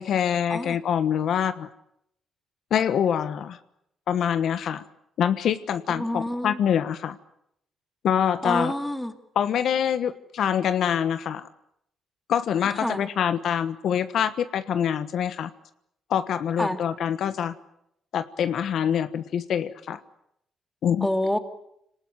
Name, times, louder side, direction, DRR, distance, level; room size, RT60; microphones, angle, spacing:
voice 1, 0.0-1.7 2.7-3.6 4.1-4.8 5.2-7.2 8.0-8.7 9.3-11.5 12.3-15.5 16.1-17.5 18.1-20.0 20.8-21.1, left 8 dB, 70° left, 11 dB, 1.2 m, -25 dB
voice 2, 5.9-6.6 8.4-9.1 12.8-13.1 16.6-16.8 21.0-21.4, left 1 dB, 5° left, 7 dB, 2.5 m, -27 dB
26.0 x 19.0 x 9.6 m, 0.78 s
cardioid pair, 90°, 0 cm